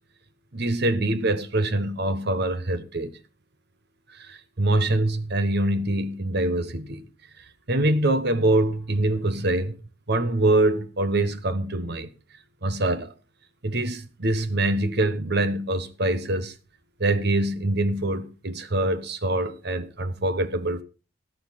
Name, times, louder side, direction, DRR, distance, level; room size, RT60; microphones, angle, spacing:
voice 1, 0.5-3.1 4.2-7.0 7.7-9.8 10.1-12.1 12.6-13.1 13.6-16.5 17.0-20.8, right 1 dB, 55° right, 1.2 m, -24 dB
12.5 x 12.0 x 4.2 m
head